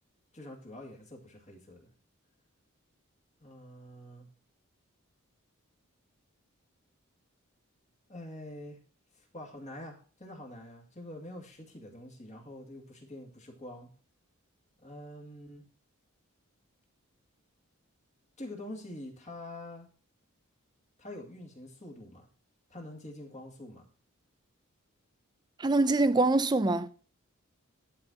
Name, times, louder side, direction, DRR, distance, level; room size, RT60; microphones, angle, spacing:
voice 1, 0.3-1.9 3.4-4.3 8.1-8.8 9.1-13.9 14.8-15.6 18.4-19.9 21.0-22.2 22.7-23.9, left 1 dB, 35° left, 2.3 m, -46 dB
voice 2, 25.6-26.9, right 2 dB, 20° right, 0.5 m, -24 dB
11.5 x 4.4 x 6.3 m
head